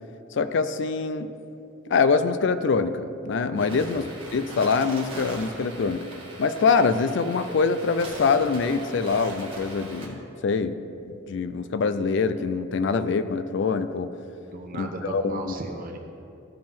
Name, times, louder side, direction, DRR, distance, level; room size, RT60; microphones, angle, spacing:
voice 1, 0.3-1.3 1.9-4.0 4.3-6.0 6.4-10.8 11.1-14.1 14.7-15.5, left 4 dB, 65° left, 11 dB, 0.4 m, -24 dB
voice 2, 3.5-3.8 14.4-16.0, right 2 dB, 45° right, 3 dB, 0.9 m, -36 dB
sound 1, 3.6-10.1, right 2 dB, 30° right, 1.7 m, -40 dB
14.5 x 5.2 x 3.5 m, 2.7 s
head